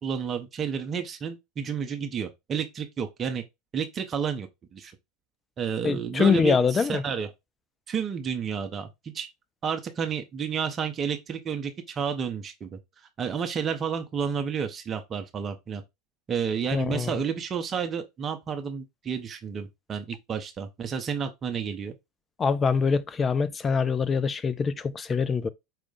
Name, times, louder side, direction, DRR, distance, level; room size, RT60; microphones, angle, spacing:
voice 1, 0.0-3.4 3.7-4.5 4.7-4.9 5.6-7.3 7.9-9.3 9.6-12.7 13.2-15.8 16.3-21.9, right 7 dB, 30° right, 0.7 m, -31 dB
voice 2, 5.8-7.0 16.7-17.1 22.4-25.5, left 5 dB, 25° left, 0.5 m, -24 dB
4.8 x 2.4 x 3.8 m
figure-of-eight pair, 80°, 0 cm